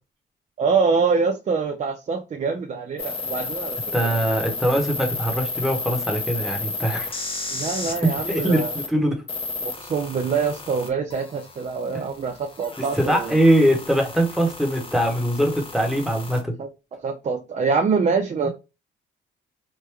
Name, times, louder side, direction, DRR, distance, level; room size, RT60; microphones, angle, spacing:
voice 1, 0.6-4.2 7.5-8.7 9.6-13.4 16.6-16.7 17.0-18.5, right 5 dB, 35° right, 0.5 m, -25 dB
sound 1, 3.0-8.9 9.3-16.4, left 3 dB, 30° left, 0.7 m, -32 dB
voice 2, 3.9-7.2 8.0-9.2 11.9-12.0 12.8-16.6, right 1 dB, ahead, 1.1 m, -22 dB
3.1 x 2.1 x 3.4 m
cardioid pair, 90°, 20 cm